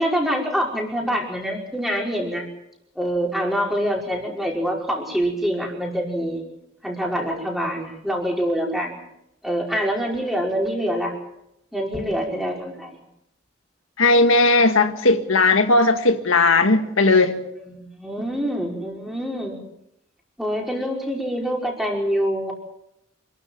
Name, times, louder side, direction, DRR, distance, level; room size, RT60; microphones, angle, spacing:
voice 1, 0.0-2.4 3.0-6.4 6.8-9.0 9.4-11.1 11.7-12.9 17.7-19.6 20.4-22.5, equal, ahead, 5.3 m, -25 dB
voice 2, 14.0-17.4, left 3 dB, 90° left, 1.8 m, -17 dB
27.5 x 13.0 x 9.1 m
head